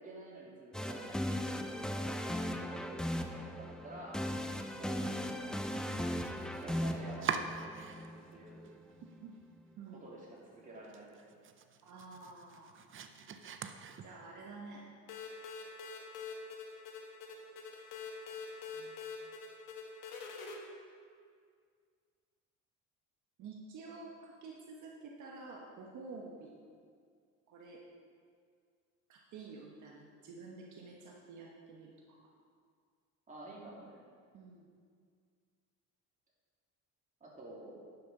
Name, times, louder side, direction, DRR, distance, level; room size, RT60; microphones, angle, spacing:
voice 1, 0.0-4.2 4.8-5.6 6.6-8.6 9.9-11.2 33.3-34.0 37.2-37.8, right 1 dB, 25° right, -5 dB, 2.8 m, -50 dB
sound 1, 0.7-8.7, equal, ahead, 0.5 m, -38 dB
Domestic sounds home sounds, 5.8-8.3 8.6-9.4 9.8-9.9 10.3-10.4 10.8-14.4, right 7 dB, 40° right, 0.6 m, -44 dB
voice 2, 9.0-9.3 9.8-10.0 11.8-12.7 14.0-14.8 18.7-19.1 23.4-26.5 27.5-27.8 29.1-32.3 34.3-34.7, right 4 dB, 65° right, -1 dB, 1.3 m, -50 dB
sound 2, 15.1-20.6, left 5 dB, 75° left, 1.5 m, -45 dB
10.5 x 6.7 x 5.4 m, 2.1 s
cardioid pair, 120°, 33 cm